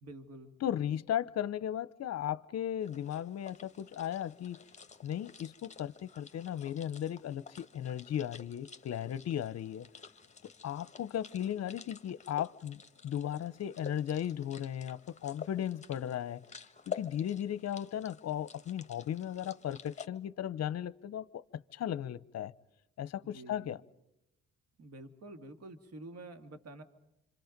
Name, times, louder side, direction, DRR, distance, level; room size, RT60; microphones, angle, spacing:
voice 1, 0.0-0.5 23.2-23.8 24.8-26.8, right 2 dB, 55° right, 2.0 m, -48 dB
voice 2, 0.6-4.6 5.0-9.9 10.6-16.4 16.9-22.5 23.0-23.8, left 10 dB, 55° left, 0.8 m, -36 dB
sound 1, 2.8-20.1, left 6 dB, 25° left, 1.5 m, -50 dB
27.0 x 26.0 x 5.2 m
cardioid pair, 90°, 30 cm